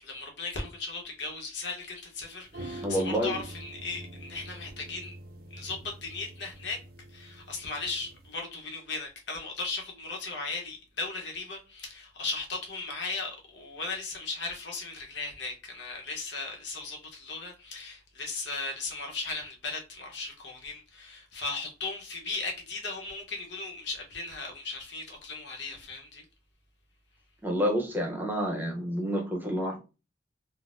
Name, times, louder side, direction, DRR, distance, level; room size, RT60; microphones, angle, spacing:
voice 1, 0.0-5.2 5.5-6.8 7.1-26.2, left 3 dB, 70° left, 0.9 m, -37 dB
sound 1, 2.4-8.4, right 1 dB, 55° right, 0.4 m, -45 dB
voice 2, 2.8-3.4 27.4-29.8, equal, 10° right, 0.7 m, -29 dB
3.7 x 2.0 x 2.5 m
head